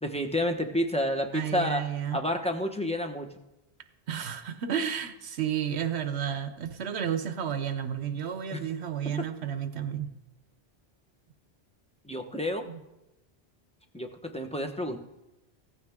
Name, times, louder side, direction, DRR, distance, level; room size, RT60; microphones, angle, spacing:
voice 1, 0.0-1.8 2.1-3.3 8.5-8.6 9.2-9.3 12.0-12.7 13.9-15.0, left 1 dB, 5° left, 4 dB, 1.0 m, -30 dB
voice 2, 1.3-2.2 4.1-10.1 12.7-12.8, right 8 dB, 85° right, 10 dB, 1.0 m, -32 dB
15.5 x 14.5 x 3.6 m, 0.95 s
omnidirectional pair, 1.1 m